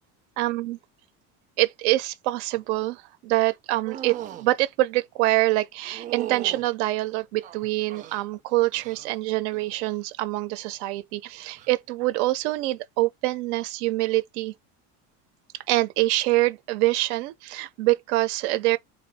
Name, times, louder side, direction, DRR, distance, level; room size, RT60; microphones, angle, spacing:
voice 1, 0.4-0.8 1.6-14.5 15.7-18.8, right 18 dB, 90° right, 0.7 m, -25 dB
sound 1, 3.8-4.5 5.9-6.7 7.4-8.2 8.7-9.2 9.5-10.0 11.5-11.7, right 12 dB, 25° right, 0.4 m, -37 dB
3.8 x 2.7 x 4.0 m
cardioid pair, 175°, 33 cm